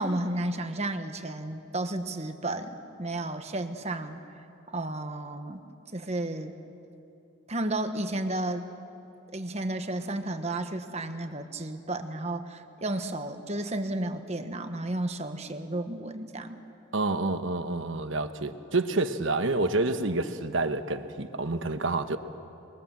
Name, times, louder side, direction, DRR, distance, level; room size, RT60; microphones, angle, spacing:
voice 1, 0.0-5.6 5.9-6.6 7.5-8.7 9.3-16.6, right 1 dB, 30° right, 7 dB, 1.2 m, -32 dB
voice 2, 16.9-22.2, right 2 dB, 65° right, 9 dB, 1.2 m, -28 dB
28.5 x 22.0 x 7.5 m, 2.7 s
head